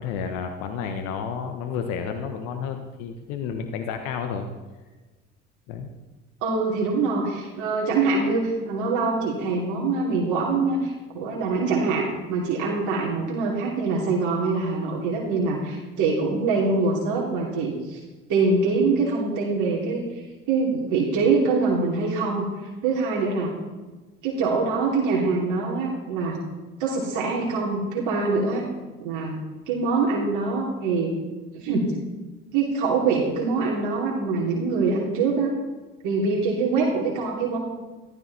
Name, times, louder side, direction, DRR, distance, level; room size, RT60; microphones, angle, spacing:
voice 1, 0.0-4.5 5.7-5.9, left 6 dB, 65° left, 6 dB, 1.3 m, -31 dB
voice 2, 6.4-18.0 18.3-20.1 20.5-22.5 22.8-23.5 24.2-26.4 26.8-28.7 29.0-29.3 29.7-31.1 31.5-31.9 32.5-35.6 36.0-37.6, right 4 dB, 60° right, -3 dB, 3.1 m, -24 dB
14.5 x 12.5 x 4.2 m, 1.3 s
hypercardioid pair, 65°, 33 cm